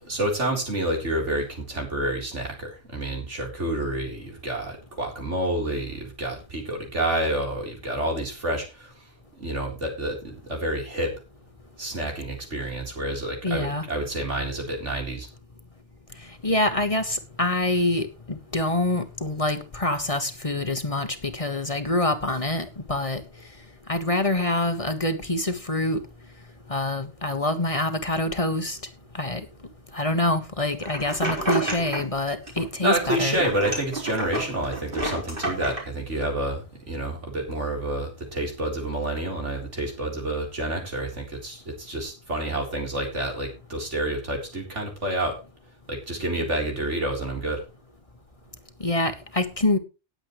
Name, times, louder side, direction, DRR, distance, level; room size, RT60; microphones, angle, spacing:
voice 1, 0.0-9.1 9.4-11.1 11.8-15.3 32.8-45.4 45.9-47.6, right 1 dB, 85° right, 4.2 m, -29 dB
voice 2, 13.4-13.8 16.4-23.2 23.9-26.0 26.7-28.8 29.1-29.5 29.9-33.4 48.8-49.8, left 2 dB, 30° left, 1.3 m, -26 dB
sound 1, 30.8-32.2 32.5-33.0 33.3-35.8, right 1 dB, 50° right, 4.8 m, -30 dB
18.5 x 7.8 x 3.1 m
omnidirectional pair, 1.2 m